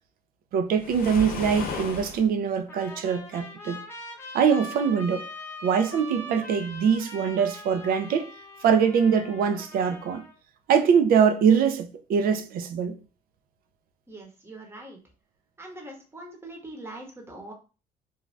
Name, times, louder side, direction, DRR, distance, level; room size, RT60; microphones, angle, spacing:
voice 1, 0.5-3.8 4.3-5.3 5.6-8.3 8.6-10.2 10.7-12.9, right 7 dB, 60° right, 0.5 m, -23 dB
Waves surf, 0.7-2.2, left 3 dB, 60° left, 0.8 m, -34 dB
Trumpet, 2.7-10.3, left 1 dB, 15° left, 0.9 m, -42 dB
voice 2, 14.1-15.0 15.6-17.5, right 1 dB, 15° right, 1.0 m, -42 dB
2.6 x 2.3 x 3.1 m
cardioid pair, 110°, 17 cm